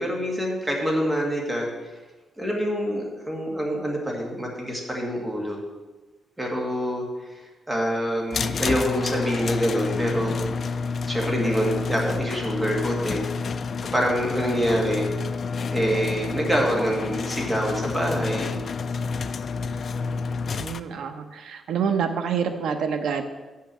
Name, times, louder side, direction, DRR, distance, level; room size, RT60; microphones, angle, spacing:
voice 1, 0.0-1.7 2.4-5.6 6.4-7.1 7.3-10.4 11.0-13.2 13.9-15.1 15.7-18.6, equal, 10° right, -1 dB, 1.8 m, -26 dB
sound 1, 8.3-20.8, left 4 dB, 45° left, 0.3 m, -29 dB
voice 2, 20.6-23.2, right 7 dB, 90° right, 7 dB, 0.9 m, -27 dB
6.9 x 5.8 x 7.5 m, 1.2 s
wide cardioid pair, 155°, 0 cm